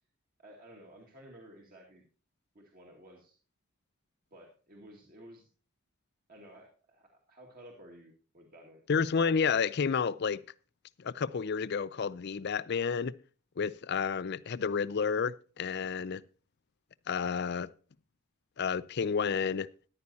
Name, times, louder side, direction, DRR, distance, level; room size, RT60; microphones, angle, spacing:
voice 1, 0.4-2.0 2.5-3.4 4.3-5.5 6.3-8.8, right 1 dB, 40° right, 2.1 m, -54 dB
voice 2, 8.9-10.4 11.0-13.2 13.6-16.2 17.1-17.7 18.6-19.7, left 6 dB, 50° left, 0.4 m, -30 dB
14.0 x 11.0 x 2.8 m
head